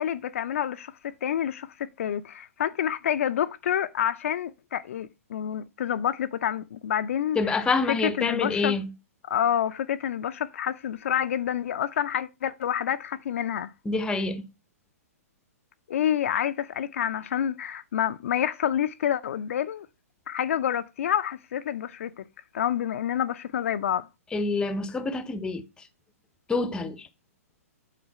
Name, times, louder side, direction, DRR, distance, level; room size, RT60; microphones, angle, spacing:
voice 1, 0.0-8.8 9.3-13.7 15.9-19.9 20.3-22.2 22.5-24.1, left 10 dB, 60° left, 0.5 m, -28 dB
voice 2, 7.3-8.9 13.8-14.5 24.3-25.6 26.5-27.1, left 3 dB, 10° left, 0.7 m, -27 dB
8.2 x 3.9 x 5.5 m
figure-of-eight pair, 120°, 8 cm